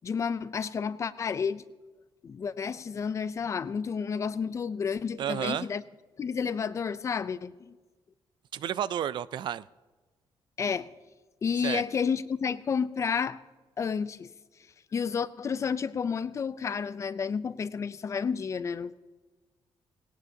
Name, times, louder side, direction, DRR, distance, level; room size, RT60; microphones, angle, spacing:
voice 1, 0.0-1.6 2.2-5.8 6.2-7.7 10.6-10.9 11.4-13.4 13.8-14.3 14.9-18.9, left 6 dB, 35° left, 0.4 m, -31 dB
voice 2, 5.2-5.7 8.5-9.6 11.6-11.8, right 10 dB, 55° right, 0.3 m, -31 dB
19.0 x 17.5 x 2.8 m
cardioid pair, 160°, 9 cm